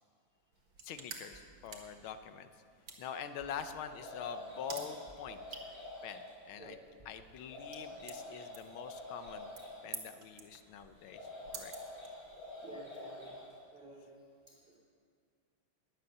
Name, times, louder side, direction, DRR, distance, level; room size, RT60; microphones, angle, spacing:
sound 1, 0.5-12.6, right 5 dB, 75° right, 2.4 m, -52 dB
voice 1, 0.8-2.5 3.0-5.7 6.0-6.8 7.0-9.5 9.8-11.3 11.5-11.7, left 8 dB, 85° left, 10 dB, 1.6 m, -45 dB
sound 2, 1.3-2.7 3.4-4.2 5.1-6.0 7.0-7.8, right 2 dB, ahead, 3.4 m, -63 dB
sound 3, 3.8-6.3 7.3-9.8 11.0-13.5, left 2 dB, 45° left, 5.9 m, -47 dB
voice 2, 12.6-13.4 13.7-14.1 14.5-14.8, right 2 dB, 30° right, -5 dB, 2.8 m, -52 dB
20.5 x 8.5 x 6.7 m, 2.2 s
omnidirectional pair, 2.2 m